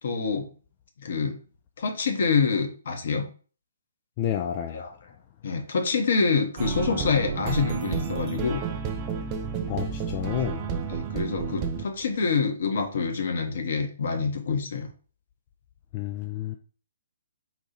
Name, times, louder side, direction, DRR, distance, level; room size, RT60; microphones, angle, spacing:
voice 1, 0.0-0.5 1.0-1.4 1.8-3.3 4.7-5.1 5.4-8.6 10.2-10.3 10.9-14.9, left 5 dB, 60° left, 0.8 m, -26 dB
voice 2, 4.2-4.8 9.7-10.6 15.9-16.6, left 11 dB, 35° left, 0.3 m, -30 dB
sound 1, 6.6-11.9, right 6 dB, 30° right, 0.5 m, -31 dB
4.2 x 2.3 x 4.0 m
figure-of-eight pair, 130°, 0 cm